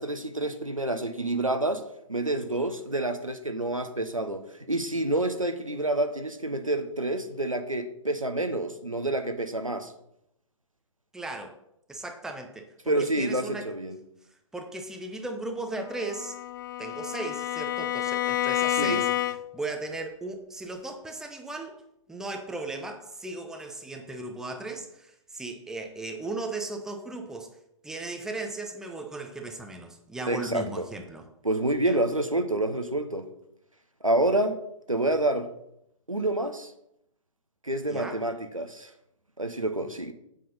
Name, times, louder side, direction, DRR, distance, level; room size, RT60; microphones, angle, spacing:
voice 1, 0.0-1.8 2.1-9.9 12.9-14.0 18.8-19.0 30.3-30.9 31.4-33.3 34.0-34.6 34.9-35.5 36.1-36.7 37.6-38.9 39.4-40.1, right 1 dB, 90° right, 8 dB, 1.1 m, -28 dB
voice 2, 11.1-11.6 11.9-13.7 14.5-16.4 16.8-19.1 19.5-21.7 22.1-27.5 27.8-31.2 31.8-32.0 37.9-38.2, right 2 dB, 5° right, 4 dB, 0.9 m, -36 dB
Bowed string instrument, 15.9-19.7, left 14 dB, 40° left, 0.4 m, -29 dB
7.7 x 7.5 x 5.4 m, 0.78 s
figure-of-eight pair, 120°, 17 cm